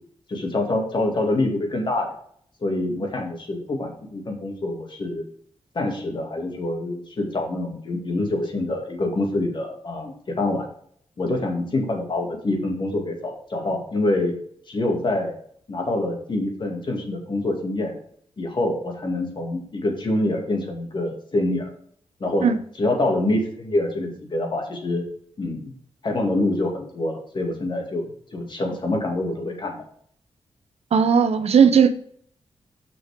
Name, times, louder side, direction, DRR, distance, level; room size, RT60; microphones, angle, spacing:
voice 1, 0.3-2.1 2.6-5.2 5.7-10.7 11.2-14.3 14.7-15.3 15.7-17.9 18.4-21.7 22.2-22.5 22.8-25.0 25.4-25.7 26.0-28.0 28.3-29.8, left 2 dB, 45° left, 2 dB, 2.2 m, -25 dB
voice 2, 30.9-31.9, right 6 dB, 75° right, 11 dB, 0.7 m, -16 dB
6.3 x 5.9 x 4.9 m, 0.62 s
wide cardioid pair, 110°, 11 cm